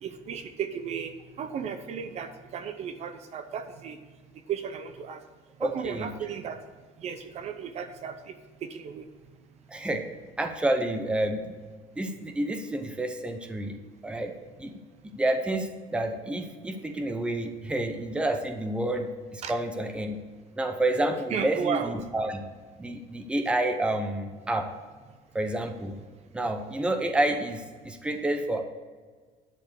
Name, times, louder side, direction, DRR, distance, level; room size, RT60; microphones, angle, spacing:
voice 1, 0.0-4.0 4.5-5.2 5.6-6.6 7.0-8.3 8.6-9.1 19.4-19.5 21.3-21.9, right 7 dB, 45° right, 8 dB, 0.6 m, -34 dB
voice 2, 5.6-6.1 9.7-10.0 10.4-11.5 12.0-13.8 14.0-14.3 14.6-14.8 15.1-20.2 20.6-22.4 22.8-24.7 25.3-26.0 26.3-28.6, right 1 dB, 5° right, 5 dB, 0.7 m, -29 dB
10.5 x 4.6 x 8.0 m, 1.5 s
cardioid pair, 165°, 16 cm